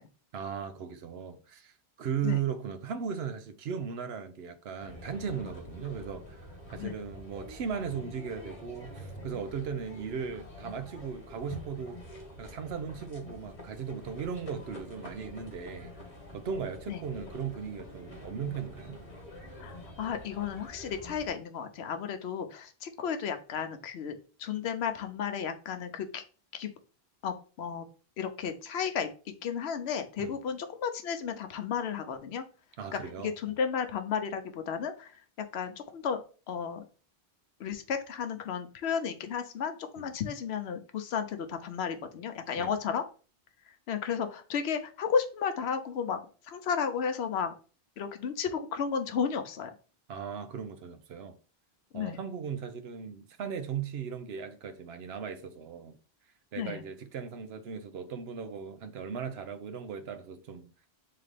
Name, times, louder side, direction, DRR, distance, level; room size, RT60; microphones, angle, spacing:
voice 1, 0.3-12.0 12.4-15.9 16.3-19.0 30.2-30.3 32.8-33.3 40.0-40.1 42.6-42.8 50.1-51.4 51.9-56.0 56.5-60.7, right 7 dB, 75° right, 0.9 m, -37 dB
sound 1, 4.8-21.3, left 1 dB, 35° left, 1.1 m, -47 dB
voice 2, 19.6-24.1 24.4-26.2 26.5-26.7 27.2-27.8 28.2-29.1 29.4-32.4 33.2-35.1 35.5-36.2 36.5-36.8 37.6-43.0 43.9-46.2 46.5-47.5 48.0-49.7 51.9-52.2 56.6-56.8, left 7 dB, 80° left, 0.9 m, -33 dB
3.8 x 3.3 x 3.3 m
omnidirectional pair, 1.1 m